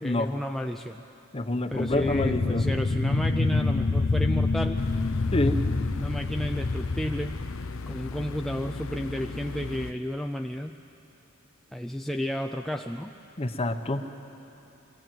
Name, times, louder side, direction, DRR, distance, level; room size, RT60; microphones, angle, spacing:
voice 1, 0.0-1.0 1.7-4.8 6.0-7.4 7.9-10.8 11.7-13.1, equal, ahead, 4 dB, 0.4 m, -32 dB
voice 2, 1.3-2.6 5.3-5.6 13.4-14.1, left 1 dB, 30° left, 7 dB, 1.0 m, -27 dB
sound 1, 1.7-8.2, left 3 dB, 50° left, 0.6 m, -27 dB
sound 2, 4.8-9.9, left 3 dB, 85° left, 0.7 m, -37 dB
23.0 x 15.5 x 9.1 m, 3.0 s
head